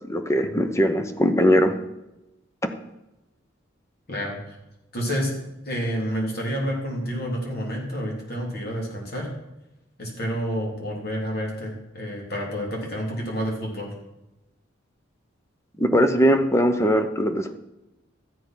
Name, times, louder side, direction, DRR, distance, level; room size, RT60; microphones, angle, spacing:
voice 1, 0.1-1.7 2.6-2.7 15.8-17.5, equal, 15° left, 8 dB, 0.9 m, -20 dB
voice 2, 4.1-4.6 4.9-5.3 5.6-9.3 10.0-13.9, equal, 50° left, -1 dB, 3.6 m, -29 dB
13.5 x 7.8 x 6.2 m, 0.96 s
head